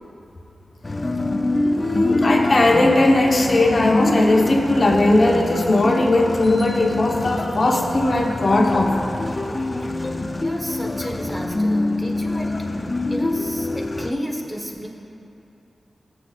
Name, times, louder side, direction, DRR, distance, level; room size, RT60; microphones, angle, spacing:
sound 1, 0.8-14.1, left 2 dB, 30° left, 0.5 m, -25 dB
voice 1, 1.8-8.9, left 2 dB, 50° left, 0 dB, 1.1 m, -18 dB
voice 2, 10.4-12.6 13.1-14.9, equal, 10° right, -1 dB, 1.3 m, -31 dB
17.5 x 7.7 x 2.5 m, 2.9 s
wide cardioid pair, 80°, 0 cm